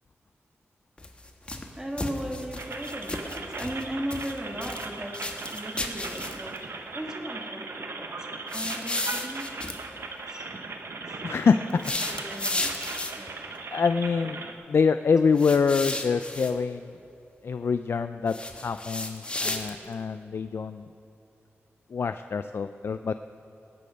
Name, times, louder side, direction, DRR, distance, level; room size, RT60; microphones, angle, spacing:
sound 1, 1.0-1.7 2.0-4.9 5.1-6.6 8.5-9.8 11.7-13.3 15.4-16.5 18.3-19.9, left 2 dB, 25° left, 1.2 m, -33 dB
voice 1, 1.7-10.5 11.1-11.2 11.5-13.3, equal, 15° right, 1 dB, 1.8 m, -38 dB
sound 2, 2.6-14.5, right 3 dB, 65° right, 1.0 m, -38 dB
voice 2, 11.2-11.6 13.7-14.4 14.7-16.9 17.4-18.3 18.6-20.9 21.9-23.1, left 5 dB, 60° left, 10 dB, 0.3 m, -25 dB
20.0 x 8.5 x 5.2 m, 2.8 s
wide cardioid pair, 90°, 5 cm